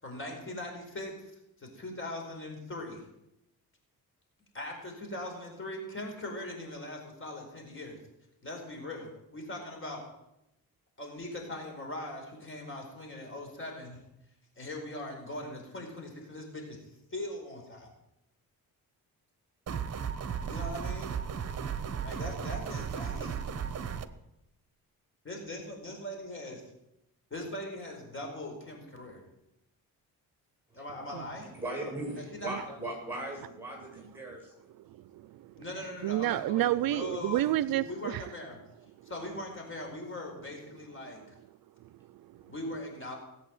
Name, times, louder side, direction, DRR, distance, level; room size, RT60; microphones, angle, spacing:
voice 1, 0.0-3.0 4.5-8.0 8.4-10.1 11.0-14.0 14.6-17.9 20.4-21.1 22.0-23.4 25.2-26.6 27.3-29.2 30.7-31.5 32.2-32.8 35.6-38.6 39.0-41.3 42.5-43.2, left 1 dB, 35° left, 4.7 m, -41 dB
sound 1, 19.7-24.1, right 7 dB, 45° right, 1.0 m, -35 dB
voice 2, 31.5-34.5 42.4-42.5, right 1 dB, 5° right, 7.8 m, -38 dB
voice 3, 34.7-35.6 36.0-38.2 41.8-42.5, right 14 dB, 70° right, 0.5 m, -31 dB
18.5 x 8.3 x 7.8 m
cardioid pair, 115°, 36 cm